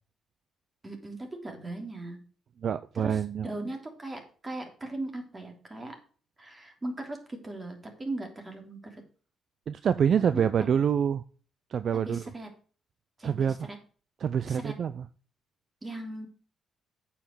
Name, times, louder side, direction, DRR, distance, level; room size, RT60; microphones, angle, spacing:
voice 1, 0.8-2.2 2.9-3.2 3.4-5.9 6.4-9.0 10.3-10.7 11.9-12.5 13.2-13.8 14.4-14.7 15.8-16.3, right 2 dB, 25° right, 3 dB, 3.1 m, -38 dB
voice 2, 2.6-3.5 9.7-11.2 11.7-12.2 13.2-13.7 14.2-15.1, right 8 dB, 55° right, 14 dB, 0.4 m, -26 dB
8.7 x 5.8 x 6.5 m, 0.41 s
cardioid pair, 90°, 0 cm